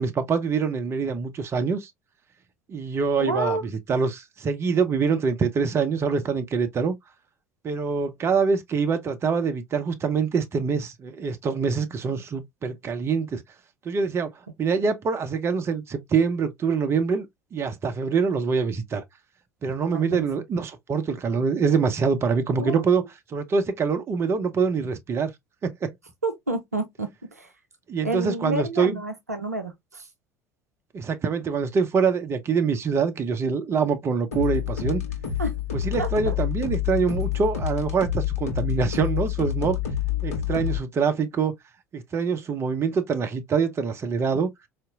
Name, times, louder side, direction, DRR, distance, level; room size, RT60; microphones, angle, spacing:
voice 1, 0.0-1.9 2.7-7.0 7.6-13.4 13.8-14.3 14.6-19.0 19.6-23.0 23.3-25.3 25.6-25.9 27.9-29.0 30.9-35.0 35.7-39.8 40.2-41.5 41.9-44.5, right 5 dB, 30° right, 0.7 m, -25 dB
voice 2, 3.2-3.6 19.9-20.3 22.5-23.1 26.2-27.5 28.0-30.1 35.4-35.5 36.0-36.3, right 2 dB, 90° right, 0.5 m, -29 dB
sound 1, 34.3-40.8, left 10 dB, 75° left, 0.9 m, -28 dB
4.1 x 2.5 x 2.3 m
figure-of-eight pair, 65°, 8 cm